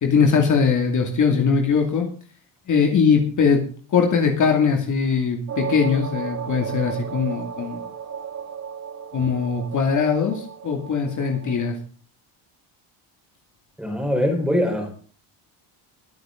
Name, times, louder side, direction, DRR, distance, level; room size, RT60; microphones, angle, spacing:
voice 1, 0.0-2.1 2.7-3.6 3.9-7.8 9.1-11.8, left 6 dB, 40° left, 3 dB, 2.5 m, -21 dB
sound 1, 5.5-11.7, right 7 dB, 40° right, 1.9 m, -34 dB
voice 2, 13.8-15.0, equal, ahead, 2 dB, 4.4 m, -22 dB
22.5 x 9.4 x 3.8 m, 0.41 s
cardioid pair, 160°, 46 cm